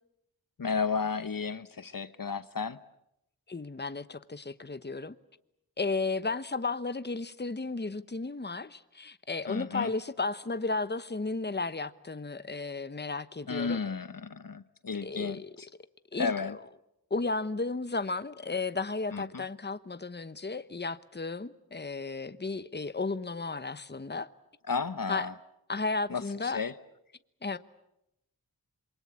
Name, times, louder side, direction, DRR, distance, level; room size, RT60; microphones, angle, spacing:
voice 1, 0.6-2.8 9.5-9.9 13.5-15.7 16.2-16.5 19.1-19.4 24.7-25.3 26.1-26.7, left 5 dB, 55° left, 1.0 m, -33 dB
voice 2, 3.5-5.2 5.8-13.8 15.0-15.5 16.1-16.6 17.1-24.3 25.1-25.3 25.7-26.6 27.4-27.6, left 3 dB, 25° left, 1.0 m, -34 dB
27.0 x 23.0 x 8.5 m
wide cardioid pair, 40°, 39 cm